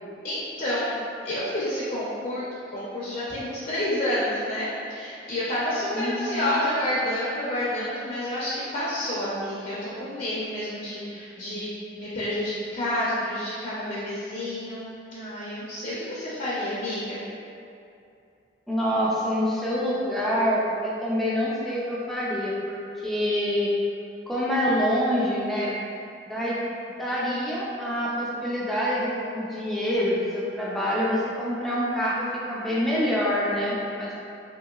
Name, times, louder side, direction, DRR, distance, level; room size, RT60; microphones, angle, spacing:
voice 1, 0.2-1.0 1.2-2.4 2.7-11.7 12.0-17.2, left 1 dB, 50° left, -10 dB, 0.6 m, -29 dB
voice 2, 5.9-6.5 18.7-23.7 24.3-25.7 26.3-26.6 27.0-34.3, equal, ahead, -7 dB, 0.4 m, -26 dB
2.9 x 2.9 x 2.3 m, 2.6 s
head